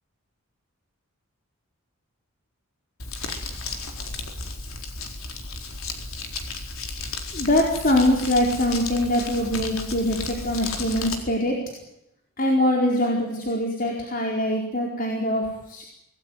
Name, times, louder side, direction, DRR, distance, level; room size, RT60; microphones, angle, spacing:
Crumpling crinkling, 3.0-11.2, left 3 dB, 70° left, 4.3 m, -34 dB
voice 1, 7.3-11.6 12.4-15.8, left 1 dB, 40° left, 0 dB, 4.6 m, -23 dB
26.0 x 19.5 x 9.5 m, 0.83 s
head